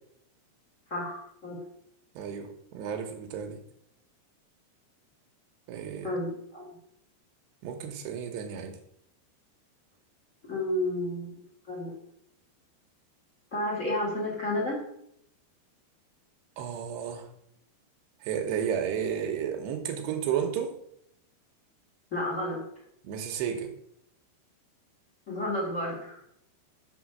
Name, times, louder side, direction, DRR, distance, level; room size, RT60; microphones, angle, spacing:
voice 1, 0.9-1.6 6.0-6.7 10.4-11.3 11.7-11.9 13.5-14.9 22.1-22.6 25.3-26.2, left 1 dB, 20° left, -3 dB, 2.4 m, -31 dB
voice 2, 2.1-3.6 5.7-6.1 7.6-8.8 16.6-17.3 18.2-20.8 23.0-23.7, right 8 dB, 80° right, 3 dB, 3.3 m, -32 dB
7.6 x 7.3 x 6.2 m, 0.74 s
omnidirectional pair, 5.0 m